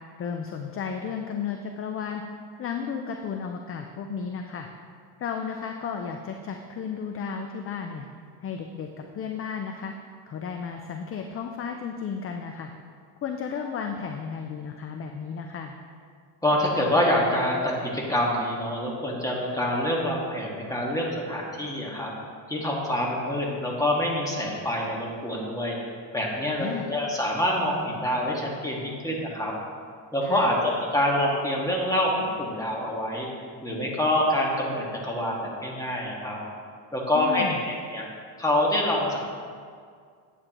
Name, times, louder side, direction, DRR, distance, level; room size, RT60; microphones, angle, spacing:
voice 1, 0.2-2.2 2.6-4.7 5.2-8.1 8.4-8.9 9.1-9.9 10.3-12.7 13.2-15.7 26.6-26.9 30.2-30.5 37.1-37.6, left 6 dB, 35° left, 4 dB, 0.5 m, -33 dB
voice 2, 16.4-22.1 22.5-25.8 26.1-29.5 30.1-33.3 33.6-36.4 36.9-38.1 38.4-39.2, left 1 dB, 10° left, -3 dB, 1.5 m, -26 dB
9.7 x 8.3 x 2.9 m, 2.1 s
cardioid pair, 120°, 41 cm